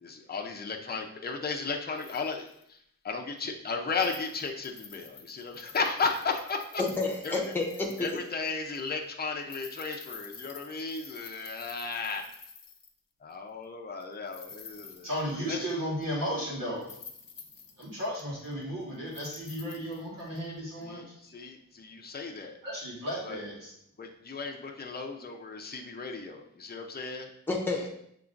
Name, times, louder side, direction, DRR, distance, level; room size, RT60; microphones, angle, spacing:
voice 1, 0.0-2.8 3.0-6.8 7.2-7.5 8.0-12.2 13.2-15.1 15.4-15.7 20.8-22.6 23.2-23.4 24.0-27.3, left 4 dB, 30° left, 2 dB, 0.6 m, -35 dB
sound 1, 2.0-2.6 3.4-3.5 3.9-8.5 8.7-8.9 9.4-13.0 14.0-15.7 16.0-16.1 16.8-18.6 19.1-20.4 20.8-20.9, left 5 dB, 85° left, 0.6 m, -49 dB
voice 2, 6.8-8.2 27.5-27.9, left 3 dB, 5° left, 0 dB, 0.9 m, -30 dB
voice 3, 15.0-16.8 17.8-21.0 22.6-23.7, equal, 85° right, -6 dB, 1.6 m, -34 dB
7.0 x 2.9 x 2.5 m, 0.72 s
wide cardioid pair, 70°, 33 cm